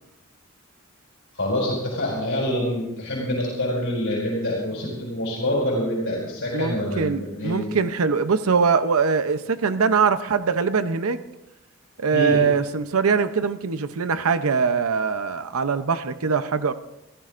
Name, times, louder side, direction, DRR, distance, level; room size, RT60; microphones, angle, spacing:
voice 1, 1.3-7.7 12.1-12.4, left 1 dB, 60° left, -4 dB, 5.0 m, -26 dB
voice 2, 6.5-11.2 12.0-16.7, right 5 dB, 85° right, 11 dB, 0.7 m, -22 dB
26.0 x 15.0 x 2.5 m, 0.95 s
head